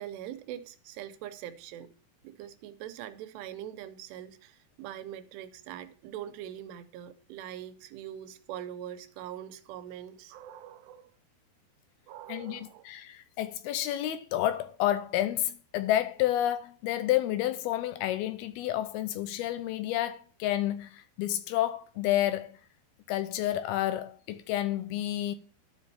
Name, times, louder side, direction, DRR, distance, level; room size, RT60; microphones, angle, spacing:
voice 1, 0.0-1.9 2.2-11.1 12.1-12.8, right 11 dB, 90° right, 2.9 m, -43 dB
voice 2, 12.3-22.6 23.1-25.4, left 13 dB, 80° left, 2.4 m, -30 dB
13.0 x 5.3 x 4.0 m
omnidirectional pair, 4.7 m